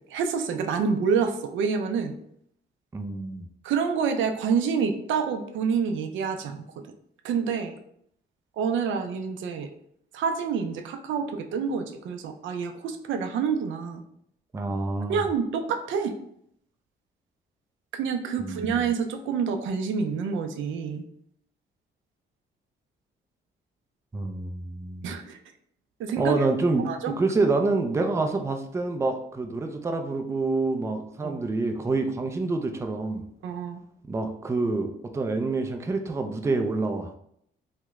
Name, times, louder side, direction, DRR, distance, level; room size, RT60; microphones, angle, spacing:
voice 1, 0.1-2.1 3.6-6.6 7.2-7.8 8.6-9.7 10.1-14.0 15.1-16.1 17.9-21.0 25.0-25.4 26.0-26.4 26.8-27.1 31.2-31.4 33.4-33.8, right 6 dB, 75° right, 7 dB, 0.4 m, -27 dB
voice 2, 2.9-3.5 14.5-15.2 18.4-18.8 24.1-25.1 26.2-33.2 34.1-37.1, right 3 dB, 15° right, 5 dB, 0.4 m, -27 dB
2.9 x 2.1 x 3.5 m, 0.70 s
cardioid pair, 90°, 20 cm